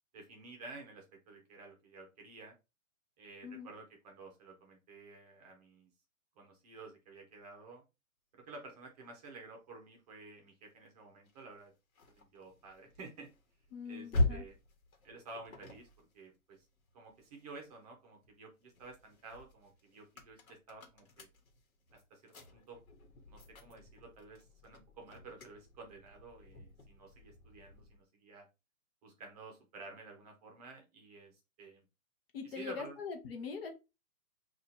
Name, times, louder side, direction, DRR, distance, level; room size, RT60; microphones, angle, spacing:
voice 1, 0.1-2.5 3.2-5.9 6.4-7.8 8.3-11.7 12.1-13.3 13.9-14.5 15.0-16.6 16.9-21.3 21.9-22.8 23.3-28.5 29.0-31.8 32.6-33.0, right 3 dB, 30° right, 2 dB, 0.7 m, -52 dB
sound 1, 11.3-17.8 18.2-28.0, left 2 dB, 75° left, 1.2 m, -42 dB
voice 2, 13.7-14.4 32.3-33.7, left 5 dB, 45° left, 4 dB, 0.8 m, -42 dB
2.7 x 2.5 x 4.0 m, 0.27 s
hypercardioid pair, 150°, 42 cm